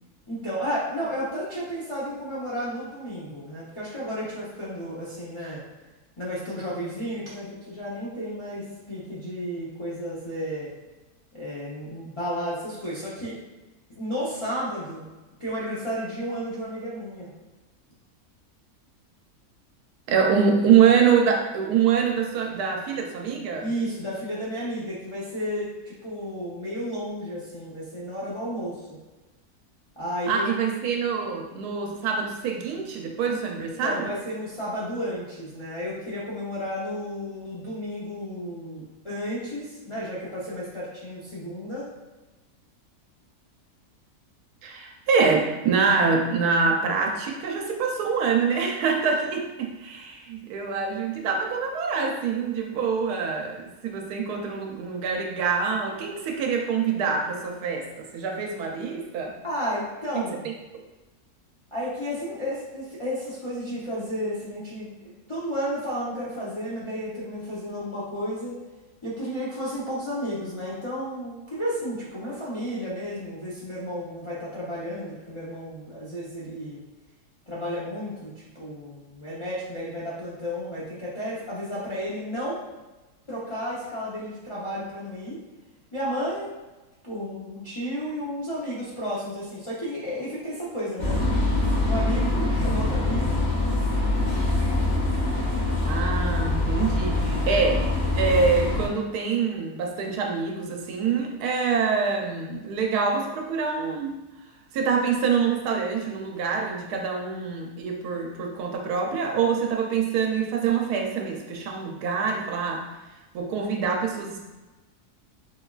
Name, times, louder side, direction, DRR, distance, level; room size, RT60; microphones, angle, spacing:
voice 1, 0.3-5.6 6.2-10.7 11.3-13.4 13.9-15.0 15.4-17.3 23.6-29.0 30.0-30.5 33.2-41.9 59.4-60.5 61.7-64.9 65.3-68.5 69.0-76.8 77.5-82.6 83.3-85.4 85.9-86.6 87.0-91.2 91.8-93.5, equal, 45° left, -8 dB, 0.4 m, -32 dB
voice 2, 20.1-23.7 30.3-34.1 44.6-59.4 60.7-60.8 95.8-97.8 98.1-104.2 104.7-112.9 113.3-114.4, right 6 dB, 85° right, 2 dB, 1.1 m, -25 dB
sound 1, 91.0-98.9, left 2 dB, 85° left, 1.6 m, -24 dB
4.9 x 2.3 x 2.3 m, 1.1 s
omnidirectional pair, 1.6 m